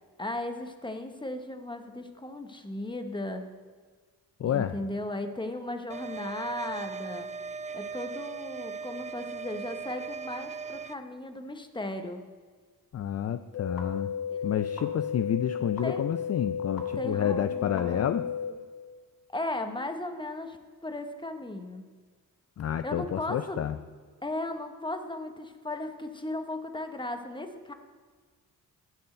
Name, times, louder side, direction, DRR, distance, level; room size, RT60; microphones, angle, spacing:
voice 1, 0.2-3.4 4.4-7.3 7.7-12.2 14.3-14.5 15.8-16.0 16.9-18.6 19.3-20.6 20.8-21.8 22.8-23.6 24.2-27.7, left 1 dB, 15° left, 7 dB, 1.1 m, -36 dB
voice 2, 4.4-4.7 12.9-14.1 14.4-18.2 22.6-23.8, left 9 dB, 45° left, 11 dB, 0.4 m, -29 dB
sound 1, 5.9-10.9, right 5 dB, 20° right, 0.4 m, -38 dB
sound 2, 13.5-18.5, left 7 dB, 65° left, 1.6 m, -33 dB
10.5 x 4.4 x 7.9 m, 1.5 s
cardioid pair, 65°, 36 cm